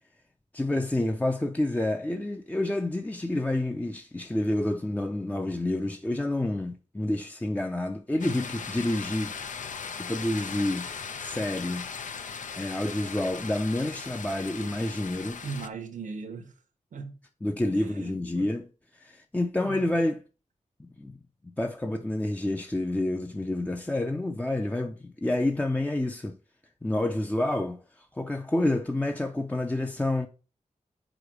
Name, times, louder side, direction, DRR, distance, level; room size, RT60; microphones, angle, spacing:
voice 1, 0.5-9.3 9.6-10.9 11.2-11.9 12.6-15.4 17.4-20.2 20.8-21.2 21.6-26.4 26.8-30.3, left 1 dB, 10° left, 0.5 m, -29 dB
sound 1, 8.2-15.7, left 6 dB, 80° left, 0.6 m, -38 dB
voice 2, 15.4-16.5 16.9-17.2 17.7-18.5 19.6-19.9, right 4 dB, 90° right, 1.0 m, -39 dB
5.0 x 4.8 x 6.1 m
wide cardioid pair, 105°, 13 cm